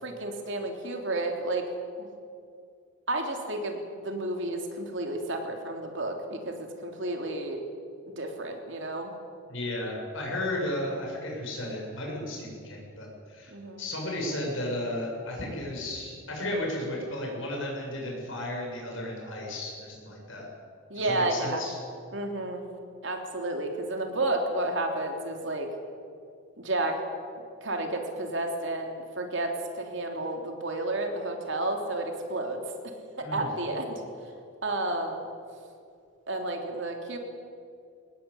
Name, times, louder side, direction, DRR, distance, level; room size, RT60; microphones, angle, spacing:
voice 1, 0.0-1.6 2.0-2.1 3.1-7.6 8.2-9.1 13.5-13.8 20.9-21.6 22.1-22.6 23.0-25.7 26.6-27.0 27.6-34.0 34.6-35.3 36.3-37.2, right 2 dB, 60° right, 3 dB, 3.3 m, -31 dB
voice 2, 9.5-13.5 13.8-20.5 20.9-21.7 33.2-33.5, left 1 dB, 65° left, -1 dB, 7.7 m, -34 dB
22.5 x 19.5 x 8.6 m, 2.4 s
head